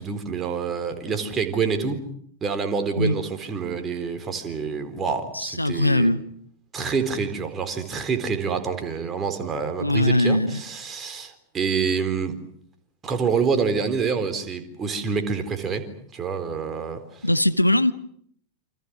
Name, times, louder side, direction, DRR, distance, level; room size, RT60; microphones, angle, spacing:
voice 1, 0.0-2.0 2.4-6.1 6.7-12.4 13.0-15.9 16.1-17.0, right 5 dB, 25° right, 4.0 m, -27 dB
voice 2, 5.3-6.2 9.8-10.6 17.2-17.9, left 1 dB, 85° left, 1.0 m, -20 dB
29.0 x 26.5 x 6.2 m
figure-of-eight pair, 90°, 0 cm